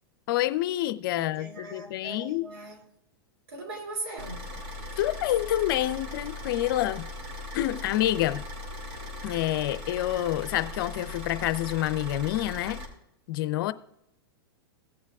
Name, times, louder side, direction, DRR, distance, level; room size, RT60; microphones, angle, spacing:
voice 1, 0.3-2.5 5.0-7.0 7.5-8.5 9.2-12.8 13.3-13.7, left 14 dB, 60° left, 0.6 m, -27 dB
voice 2, 1.1-2.8 3.5-4.4, right 2 dB, 80° right, 2.7 m, -39 dB
Car / Idling, 4.2-12.9, left 2 dB, 50° right, 2.4 m, -39 dB
16.5 x 7.4 x 2.4 m
hypercardioid pair, 130°, 13 cm